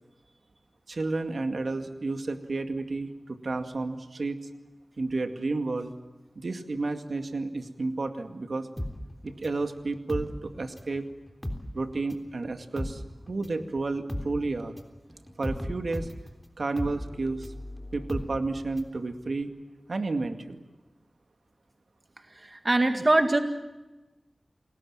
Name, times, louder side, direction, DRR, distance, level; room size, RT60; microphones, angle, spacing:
voice 1, 0.9-4.4 5.0-5.9 6.4-8.7 9.2-11.1 11.7-13.0 13.3-14.8 15.4-16.1 16.6-17.5 17.9-19.5 19.9-20.6, right 3 dB, 75° right, 6 dB, 2.2 m, -31 dB
sound 1, 8.8-11.0 11.3-19.0 19.3-19.4, left 1 dB, 10° left, 3.5 m, -37 dB
voice 2, 22.3-23.4, right 2 dB, 40° right, 6 dB, 2.0 m, -23 dB
29.5 x 20.0 x 7.5 m, 1.1 s
wide cardioid pair, 50°, 0 cm